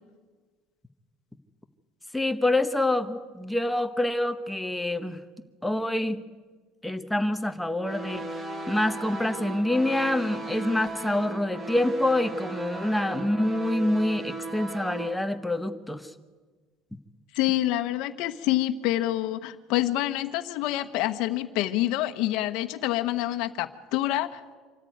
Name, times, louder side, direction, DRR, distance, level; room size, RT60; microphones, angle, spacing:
voice 1, 2.1-5.2 5.6-6.2 6.8-8.3 8.7-16.0, left 1 dB, 5° left, 8 dB, 1.0 m, -26 dB
sound 1, 7.8-15.2, right 2 dB, 20° right, 1.9 m, -36 dB
voice 2, 17.3-24.6, left 14 dB, 65° left, 8 dB, 1.1 m, -27 dB
26.0 x 13.5 x 9.4 m, 1.4 s
cardioid pair, 160°, 0 cm